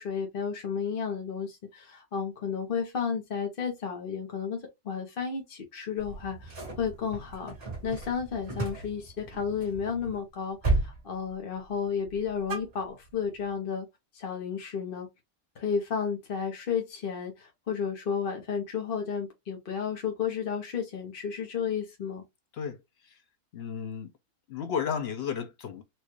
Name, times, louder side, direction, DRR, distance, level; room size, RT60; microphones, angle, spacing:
voice 1, 0.0-7.5 7.8-13.9 14.1-15.1 15.6-22.2, left 6 dB, 45° left, 0.9 m, -32 dB
sound 1, 6.0-10.2 10.6-11.0 11.3-11.7 12.0-13.3, right 2 dB, 50° right, 2.1 m, -34 dB
voice 2, 23.5-24.1 24.5-25.8, left 7 dB, 65° left, 0.6 m, -33 dB
4.3 x 2.3 x 3.0 m
omnidirectional pair, 1.5 m